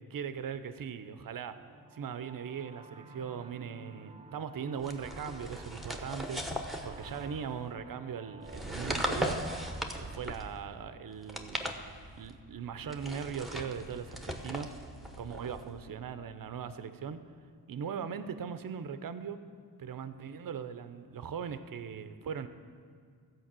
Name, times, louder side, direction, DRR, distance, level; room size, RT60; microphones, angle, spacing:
voice 1, 0.0-1.6 1.9-6.5 6.8-9.4 9.9-11.6 12.2-14.7 15.2-17.2 17.7-19.4 19.8-22.5, right 7 dB, 55° right, 11 dB, 0.7 m, -39 dB
sound 1, 1.5-11.9, right 3 dB, 15° right, 0.5 m, -52 dB
sound 2, 4.8-7.6 8.4-10.6 11.2-12.3 12.9-15.7, equal, ahead, 0.9 m, -38 dB
sound 3, 5.2-17.7, left 2 dB, 30° left, 1.1 m, -60 dB
14.0 x 5.2 x 7.4 m, 2.2 s
wide cardioid pair, 80°, 40 cm